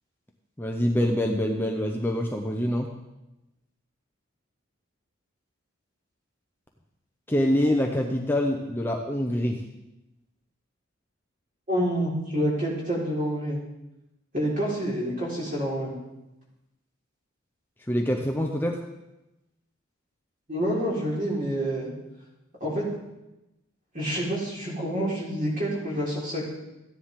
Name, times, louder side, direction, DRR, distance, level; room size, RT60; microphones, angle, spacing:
voice 1, 0.6-2.9 7.3-9.6 17.9-18.8, left 1 dB, 10° left, 2 dB, 0.7 m, -25 dB
voice 2, 11.7-13.6 14.3-15.9 20.5-21.9 22.6-22.9 23.9-26.4, equal, 40° right, -5 dB, 4.2 m, -27 dB
14.5 x 9.9 x 3.7 m, 0.96 s
head